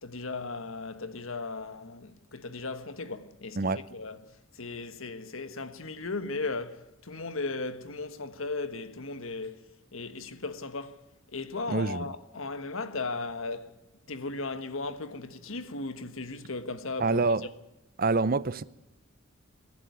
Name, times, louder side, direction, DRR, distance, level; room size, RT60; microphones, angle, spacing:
voice 1, 0.0-9.6 9.9-11.0 11.3-13.7 14.1-17.2, left 3 dB, 70° left, 1.5 m, -36 dB
voice 2, 11.7-12.0 17.0-17.5 18.0-18.6, right 3 dB, 45° right, 0.6 m, -26 dB
25.0 x 11.5 x 9.4 m
head